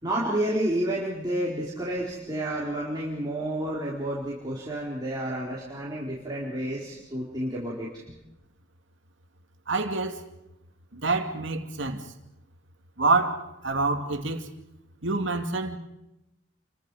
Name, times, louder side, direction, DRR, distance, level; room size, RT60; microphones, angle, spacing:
voice 1, 0.0-7.9, right 1 dB, 20° right, 4.3 m, -30 dB
voice 2, 9.7-10.3 10.9-12.0 13.0-14.5 15.0-15.8, right 3 dB, 70° right, 2.4 m, -27 dB
29.5 x 24.0 x 5.0 m
head